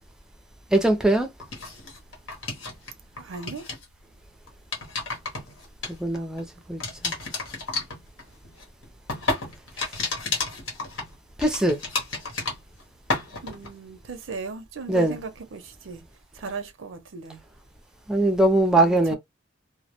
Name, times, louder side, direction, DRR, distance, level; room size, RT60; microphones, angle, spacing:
voice 1, 0.7-1.3 5.9-7.1 11.4-11.8 14.9-15.2 18.1-19.2, right 1 dB, 5° right, 0.4 m, -21 dB
sound 1, 1.4-2.9 3.2-3.9 4.5-6.4 6.8-12.8 13.1-13.7, left 3 dB, 75° left, 1.0 m, -31 dB
voice 2, 3.2-3.7 13.4-16.0 16.3-17.4 18.7-19.2, right 4 dB, 70° right, 0.5 m, -37 dB
2.1 x 2.0 x 2.8 m
head